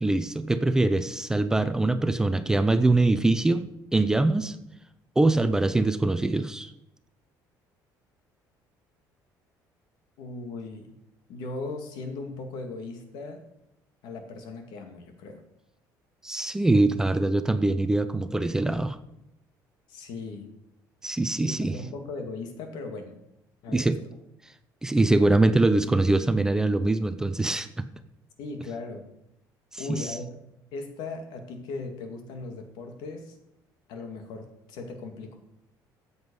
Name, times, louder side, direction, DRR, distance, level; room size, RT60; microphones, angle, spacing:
voice 1, 0.0-4.6 5.2-6.7 16.2-19.0 21.0-21.8 23.7-24.0 24.8-27.7 29.7-30.2, right 2 dB, 10° right, 11 dB, 0.5 m, -23 dB
voice 2, 10.2-11.0 11.3-13.4 14.0-15.4 19.9-20.5 21.5-23.2 23.6-24.0 28.4-29.0 29.8-30.4 30.7-33.4 33.9-35.4, left 3 dB, 75° left, 5 dB, 2.2 m, -38 dB
13.5 x 8.0 x 5.4 m, 0.84 s
cardioid pair, 155°, 7 cm